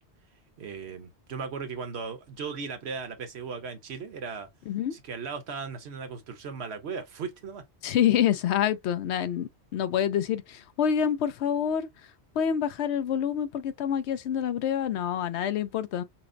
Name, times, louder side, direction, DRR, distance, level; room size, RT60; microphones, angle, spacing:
voice 1, 0.6-4.5 4.9-7.6, right 5 dB, 70° right, 1.1 m, -37 dB
voice 2, 7.8-11.9 12.4-16.0, left 9 dB, 80° left, 0.9 m, -27 dB
5.7 x 2.0 x 2.5 m
omnidirectional pair, 1.1 m